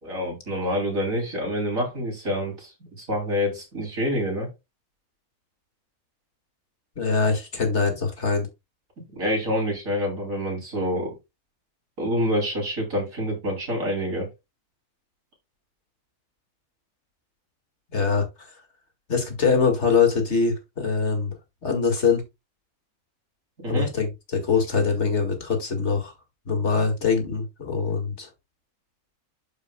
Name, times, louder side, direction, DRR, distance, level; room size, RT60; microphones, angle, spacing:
voice 1, 0.0-2.7 3.0-4.5 9.2-11.2 12.0-14.3 23.6-23.9, equal, 65° right, 3.6 m, -27 dB
voice 2, 7.0-8.5 17.9-18.5 19.1-21.4 21.6-22.2 23.7-26.1 26.5-28.3, left 5 dB, 50° left, 2.2 m, -23 dB
12.0 x 5.1 x 2.2 m
omnidirectional pair, 1.5 m